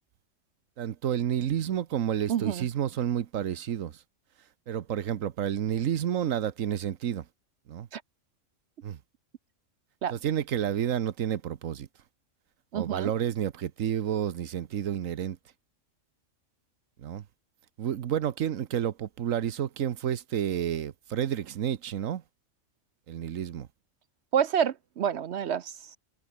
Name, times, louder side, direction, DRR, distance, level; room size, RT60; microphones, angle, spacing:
voice 1, 0.8-4.0 4.7-7.3 7.7-7.9 8.8-9.0 10.1-11.9 12.7-15.4 17.0-17.2 17.8-22.2 23.1-23.7, right 10 dB, 85° right, 1.3 m, -30 dB
voice 2, 2.3-2.7 7.9-8.0 10.0-10.1 12.7-13.1 24.3-25.7, right 8 dB, 60° right, 0.9 m, -28 dB
omnidirectional pair, 1.3 m